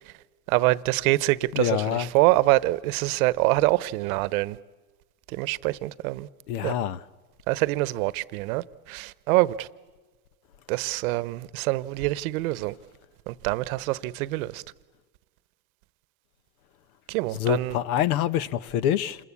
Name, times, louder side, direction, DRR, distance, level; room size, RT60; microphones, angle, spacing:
voice 1, 0.5-4.6 5.3-6.3 6.6-6.7 7.5-9.7 10.7-12.7 13.3-14.6 17.1-17.8, right 19 dB, 75° right, 0.9 m, -25 dB
voice 2, 1.5-2.1 6.5-7.0 17.4-19.2, left 11 dB, 80° left, 1.0 m, -26 dB
27.5 x 21.0 x 8.4 m
supercardioid pair, 115°, 43 cm